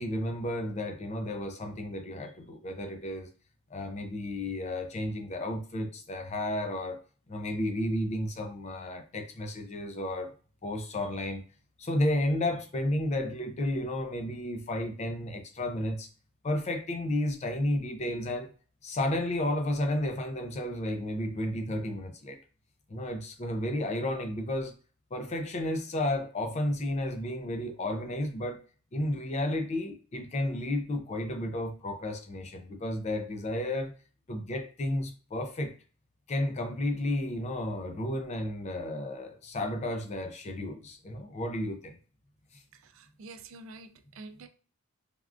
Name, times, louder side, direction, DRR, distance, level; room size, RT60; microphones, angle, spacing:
voice 1, 0.0-3.3 3.7-7.0 7.3-10.3 10.6-11.4 11.8-16.1 16.4-18.5 18.8-22.4 22.9-24.7 25.1-28.6 28.9-33.9 34.3-35.7 36.3-42.0 42.5-42.6, left 1 dB, 30° left, 0.4 m, -32 dB
voice 2, 42.7-44.5, right 3 dB, 60° right, 0.4 m, -48 dB
3.4 x 2.3 x 2.4 m
head